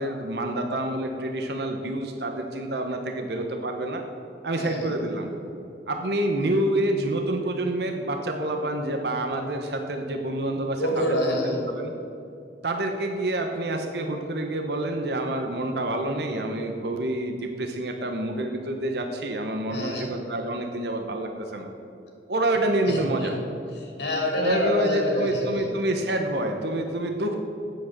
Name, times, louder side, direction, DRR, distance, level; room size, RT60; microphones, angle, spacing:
voice 1, 0.0-4.0 4.4-5.3 5.9-11.2 11.7-11.9 12.6-21.7 22.3-23.4 24.4-27.3, right 1 dB, 65° right, 4 dB, 0.9 m, -27 dB
voice 2, 4.6-4.9 10.8-11.7 19.7-20.1 22.8-23.3 23.8-25.7, left 1 dB, 80° left, 0 dB, 2.9 m, -27 dB
8.9 x 7.8 x 7.2 m, 2.7 s
head